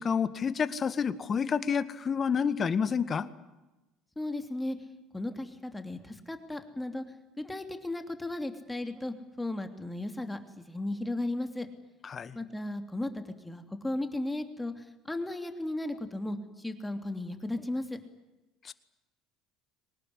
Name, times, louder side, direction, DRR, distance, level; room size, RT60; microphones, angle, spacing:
voice 1, 0.0-3.3 12.0-12.4 18.6-18.7, left 6 dB, 35° left, 14 dB, 1.9 m, -29 dB
voice 2, 4.2-4.8 5.1-7.0 7.4-11.7 12.3-18.0, left 1 dB, 10° left, 7 dB, 3.1 m, -35 dB
24.0 x 20.0 x 9.9 m, 1.1 s
hypercardioid pair, 70°, 0 cm